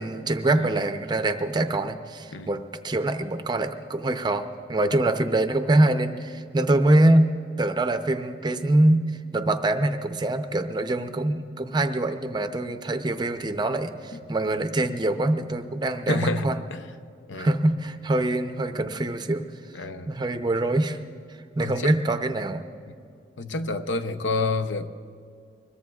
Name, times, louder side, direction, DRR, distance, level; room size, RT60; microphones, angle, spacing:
voice 1, 0.0-4.4 4.7-16.6 17.4-19.5 20.1-21.0 21.6-22.6, right 1 dB, 20° right, 8 dB, 0.6 m, -24 dB
voice 2, 16.1-16.8 17.3-17.5 19.7-20.1 21.6-21.9 23.4-24.9, left 2 dB, 75° left, 9 dB, 0.7 m, -28 dB
24.5 x 21.5 x 2.4 m, 2.3 s
head